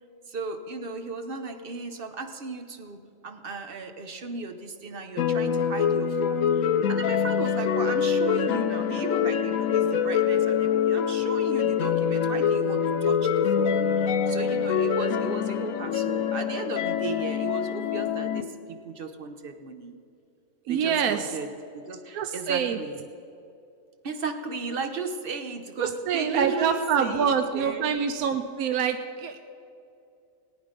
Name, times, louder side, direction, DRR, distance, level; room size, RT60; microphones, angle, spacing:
voice 1, 0.3-20.0 20.7-21.5 21.7-23.0 24.0-27.9, right 4 dB, 45° right, 7 dB, 0.9 m, -35 dB
sound 1, 5.2-18.4, left 8 dB, 70° left, 1.0 m, -25 dB
sound 2, 9.6-15.0, equal, 25° left, 2.6 m, -39 dB
voice 2, 20.7-21.4 22.1-22.8 25.8-29.4, right 7 dB, 85° right, 7 dB, 1.1 m, -26 dB
18.5 x 9.3 x 5.1 m, 2.5 s
omnidirectional pair, 1.5 m